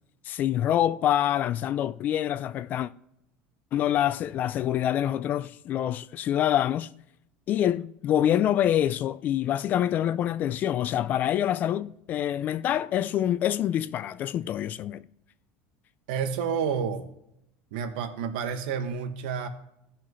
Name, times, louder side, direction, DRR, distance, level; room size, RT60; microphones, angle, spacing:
voice 1, 0.2-2.9 3.7-6.9 7.5-15.0, left 11 dB, 40° left, 0.3 m, -26 dB
voice 2, 16.1-17.1 17.7-19.5, right 6 dB, 85° right, 1.2 m, -29 dB
16.0 x 5.8 x 3.1 m
cardioid pair, 145°, 5 cm